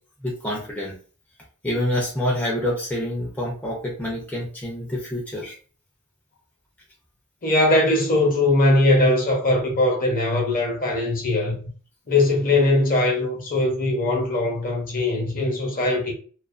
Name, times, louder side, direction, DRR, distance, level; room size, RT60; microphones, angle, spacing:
voice 1, 0.2-0.9 1.6-5.5, left 1 dB, 5° left, 0.5 m, -27 dB
voice 2, 7.4-11.5 12.1-16.1, left 2 dB, 40° left, 0.8 m, -20 dB
2.4 x 2.3 x 2.4 m
head